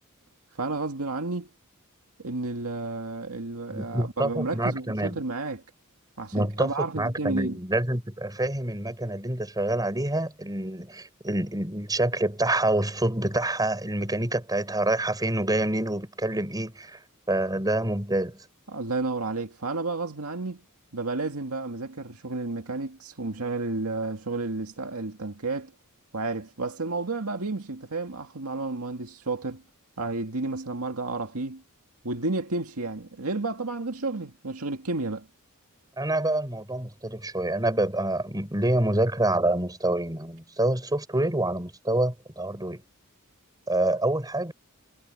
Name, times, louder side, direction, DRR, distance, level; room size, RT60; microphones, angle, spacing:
voice 1, 0.6-1.5 2.2-5.6 6.2-7.6 18.7-20.6 20.9-25.7 26.1-29.6 30.0-31.6 32.0-35.3, right 3 dB, 85° right, 2.0 m, -31 dB
voice 2, 3.7-5.2 6.3-17.0 17.3-18.5 36.0-42.8 43.7-44.5, right 1 dB, 20° right, 7.6 m, -27 dB
head